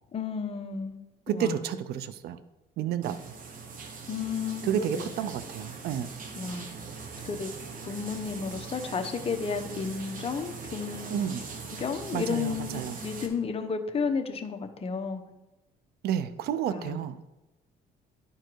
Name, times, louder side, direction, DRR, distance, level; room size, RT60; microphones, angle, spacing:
voice 1, 0.1-1.0 1.3-1.6 4.1-5.1 6.3-6.7 7.2-7.5 7.8-11.3 11.6-15.2 16.7-17.0, left 5 dB, 35° left, 5 dB, 1.0 m, -32 dB
voice 2, 1.3-2.4 2.8-3.3 4.6-6.1 11.1-11.4 12.1-13.0 16.0-17.2, right 10 dB, 70° right, 12 dB, 0.5 m, -30 dB
sound 1, 3.0-13.3, right 5 dB, 55° right, 1.3 m, -41 dB
11.0 x 4.6 x 4.6 m, 0.99 s
cardioid pair, 110°, 17 cm